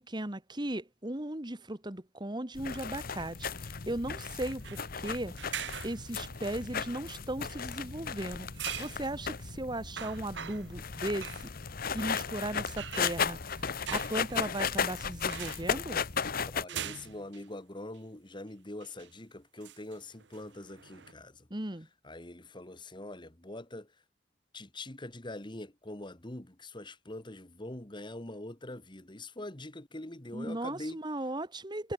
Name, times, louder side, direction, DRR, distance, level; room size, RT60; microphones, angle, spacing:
voice 1, 0.0-5.4 5.8-8.5 8.8-11.4 11.9-16.0 21.5-21.9 30.3-31.9, right 1 dB, 25° right, 1.6 m, -37 dB
sound 1, 2.5-16.6, left 6 dB, 50° left, 1.0 m, -35 dB
sound 2, 4.6-4.9 5.4-6.4 8.5-9.0 9.5-9.6 10.0-10.8 11.2-11.5 12.8-14.9 15.2-15.7 16.7-17.5 18.0-18.1 18.8-19.1 19.6-21.1, right 9 dB, 60° right, 1.2 m, -42 dB
voice 2, 16.5-21.5 22.0-23.9 24.5-31.0, left 1 dB, 25° left, 1.7 m, -43 dB
head